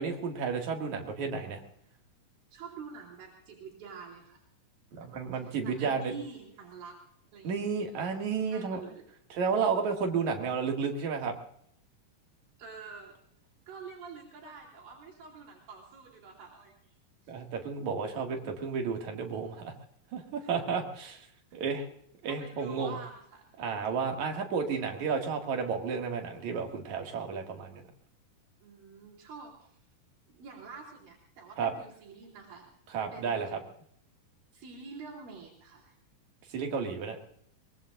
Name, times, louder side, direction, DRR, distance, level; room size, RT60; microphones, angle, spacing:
voice 1, 0.0-1.6 5.0-6.1 7.4-8.8 9.3-11.3 17.3-19.7 20.1-21.2 21.5-21.9 22.2-22.9 23.6-27.9 31.6-31.7 32.9-33.6 36.5-37.2, right 5 dB, 60° right, 2 dB, 3.2 m, -32 dB
voice 2, 2.5-4.4 4.9-5.1 5.3-7.0 7.3-7.7 8.5-9.0 12.6-13.1 13.7-16.9 17.2-17.3 20.4-20.6 22.2-23.4 28.6-29.8 30.3-32.6 33.1-33.6 34.5-36.0, right 5 dB, 80° right, -4 dB, 4.5 m, -47 dB
23.0 x 22.0 x 2.5 m, 0.68 s
omnidirectional pair, 4.0 m